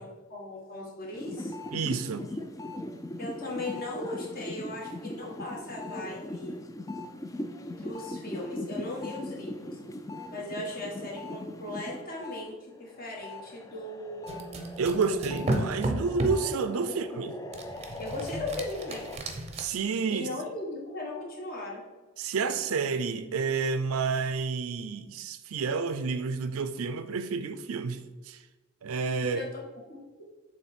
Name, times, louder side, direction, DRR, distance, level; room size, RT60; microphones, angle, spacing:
voice 1, 0.0-1.5 3.2-6.6 7.8-9.8 10.3-14.5 16.9-17.5 18.0-19.1 20.1-21.8 29.3-30.0, left 2 dB, 45° left, 1.5 m, -38 dB
sound 1, 1.1-12.4 12.8-19.2, left 1 dB, 15° left, 0.3 m, -40 dB
voice 2, 1.7-2.3 14.8-17.3 19.6-20.3 22.2-28.4 28.8-29.4, right 4 dB, 85° right, 0.4 m, -30 dB
sound 2, 14.3-16.5 17.5-19.6, right 2 dB, 30° right, 0.6 m, -33 dB
7.0 x 3.2 x 4.3 m
head